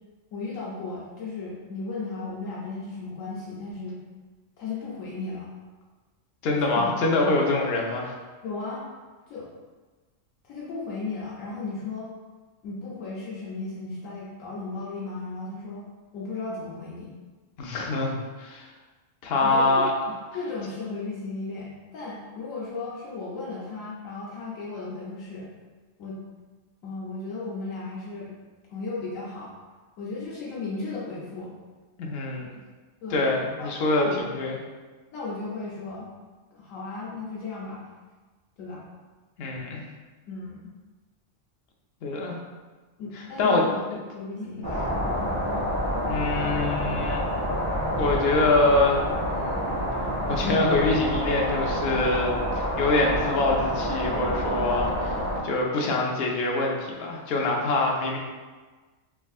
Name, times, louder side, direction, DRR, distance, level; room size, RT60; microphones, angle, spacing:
voice 1, 0.3-4.0 4.6-5.5 6.6-7.0 8.4-8.8 9.3-9.5 10.4-12.1 12.6-15.8 16.1-17.1 19.4-19.9 20.3-25.5 26.0-26.2 26.8-28.3 28.7-29.5 30.0-31.5 33.0-34.3 35.1-36.1 36.5-37.8 38.6-38.8 40.3-40.7 43.0-45.1, left 3 dB, 85° left, -6 dB, 1.1 m, -35 dB
voice 2, 6.4-8.1 17.6-18.7 19.2-19.9 32.0-32.5 33.1-34.1 34.4-34.6 39.4-39.8 42.0-42.4 43.4-43.6 44.4-44.5 46.1-47.2 48.0-49.0 50.3-58.2, left 2 dB, 60° left, -1 dB, 0.7 m, -24 dB
sound 1, 44.6-55.4, equal, 25° right, 1.1 m, -28 dB
3.5 x 3.0 x 2.4 m, 1.3 s
omnidirectional pair, 1.3 m